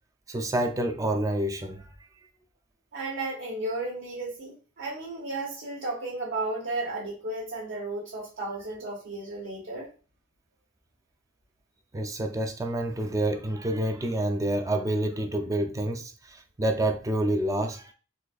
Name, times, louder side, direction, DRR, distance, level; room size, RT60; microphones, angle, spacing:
voice 1, 0.3-1.9 11.9-17.9, right 1 dB, 15° right, 0.3 m, -28 dB
voice 2, 2.9-9.9, right 2 dB, 80° right, 0.9 m, -34 dB
3.9 x 2.5 x 2.3 m
head